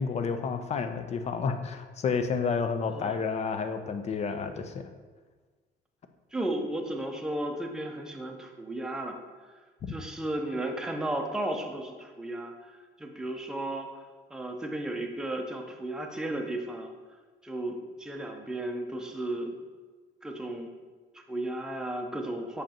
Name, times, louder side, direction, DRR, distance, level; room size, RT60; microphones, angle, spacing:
voice 1, 0.0-4.9, left 5 dB, 40° left, 8 dB, 0.5 m, -30 dB
voice 2, 6.3-9.2 9.9-12.7 13.0-13.9 14.3-16.9 17.4-19.5 20.2-20.7 21.1-22.6, right 1 dB, 5° right, 2 dB, 0.7 m, -34 dB
6.4 x 5.1 x 2.9 m, 1.4 s
cardioid pair, 110°, 17 cm